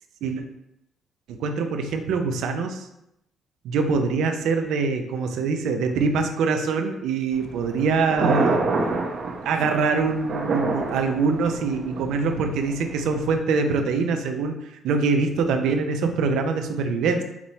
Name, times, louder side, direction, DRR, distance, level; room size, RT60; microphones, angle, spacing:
voice 1, 1.3-2.9 3.6-8.9 9.4-17.2, right 4 dB, 85° right, 5 dB, 0.5 m, -24 dB
Thunder, 7.3-13.3, right 3 dB, 65° right, 0.9 m, -28 dB
5.9 x 2.1 x 4.0 m, 0.82 s
cardioid pair, 90°, 0 cm